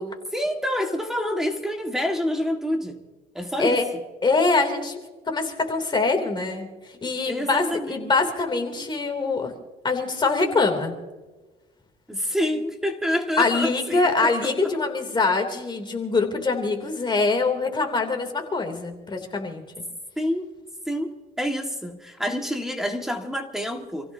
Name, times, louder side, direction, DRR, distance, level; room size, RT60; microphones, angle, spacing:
voice 1, 0.3-3.0 3.3-3.8 7.3-8.1 12.1-14.5 20.2-20.5 20.9-24.1, equal, 5° right, 3 dB, 1.9 m, -27 dB
voice 2, 4.2-5.0 5.3-9.5 9.8-10.9 13.4-19.6, left 3 dB, 25° left, 4 dB, 3.1 m, -24 dB
28.5 x 16.0 x 2.8 m, 1.2 s
cardioid pair, 110°, 17 cm